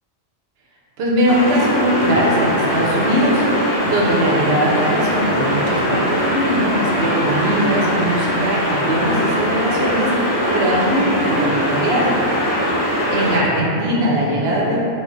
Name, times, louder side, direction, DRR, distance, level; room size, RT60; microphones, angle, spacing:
voice 1, 1.0-3.4 3.9-12.2 13.1-14.8, right 1 dB, 70° right, -4 dB, 0.8 m, -20 dB
sound 1, 1.3-13.4, equal, 70° left, 0.9 m, -21 dB
3.1 x 2.3 x 2.5 m, 2.7 s
omnidirectional pair, 1.2 m